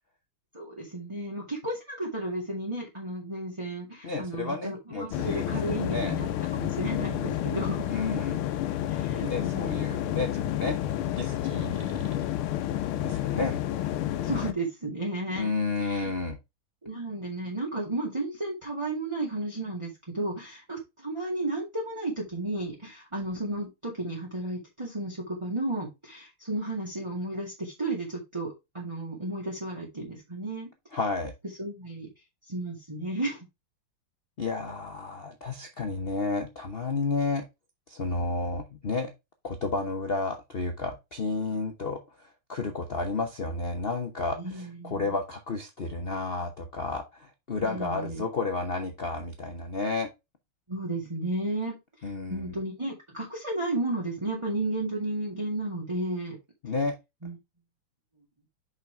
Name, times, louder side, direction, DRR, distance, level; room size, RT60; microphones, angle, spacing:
voice 1, 0.5-7.9 8.9-10.0 14.2-15.5 15.8-16.1 16.8-30.7 31.6-32.1 32.5-33.5 44.4-45.1 47.6-48.2 50.7-56.4 57.2-57.4, right 2 dB, 15° right, -2 dB, 2.0 m, -33 dB
voice 2, 4.0-6.2 7.9-8.4 9.3-10.8 11.1-12.2 13.0-13.6 15.3-16.4 30.9-31.3 34.4-37.4 37.9-39.1 39.4-50.1 52.0-52.5 56.6-56.9, left 3 dB, 55° left, 5 dB, 0.6 m, -31 dB
sound 1, 5.1-14.5, left 12 dB, 85° left, 1.6 m, -30 dB
5.9 x 5.7 x 3.4 m, 0.23 s
omnidirectional pair, 2.3 m